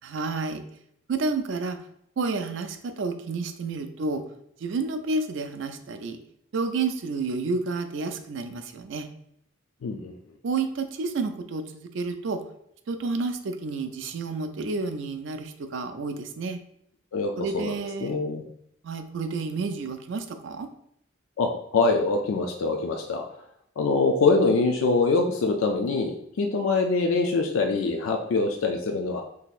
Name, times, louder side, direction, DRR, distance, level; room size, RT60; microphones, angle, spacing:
voice 1, 0.0-0.6 1.1-1.8 2.2-4.2 4.6-6.2 6.5-9.1 10.4-12.4 12.9-16.6 17.4-18.1 18.8-20.7, right 3 dB, 65° right, 7 dB, 0.4 m, -30 dB
voice 2, 9.8-10.1 17.1-17.7 18.0-18.4 21.4-23.2 23.8-29.2, left 3 dB, 85° left, 3 dB, 0.4 m, -24 dB
3.9 x 2.7 x 2.4 m, 0.71 s
head